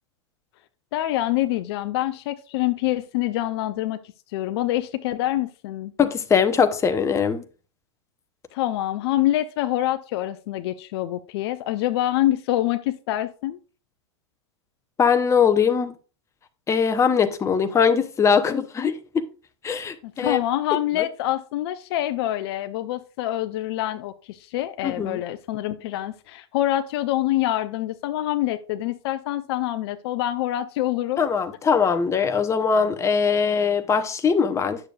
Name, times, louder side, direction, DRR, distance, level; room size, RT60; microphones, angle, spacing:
voice 1, 0.9-4.0 4.3-5.9 8.5-13.6 20.0-31.3, left 14 dB, 60° left, 0.5 m, -26 dB
voice 2, 6.0-7.4 15.0-15.9 16.7-19.2 19.6-20.4 24.8-25.2 31.2-34.8, left 6 dB, 20° left, 0.8 m, -21 dB
9.4 x 6.8 x 2.4 m
hypercardioid pair, 105°, 15 cm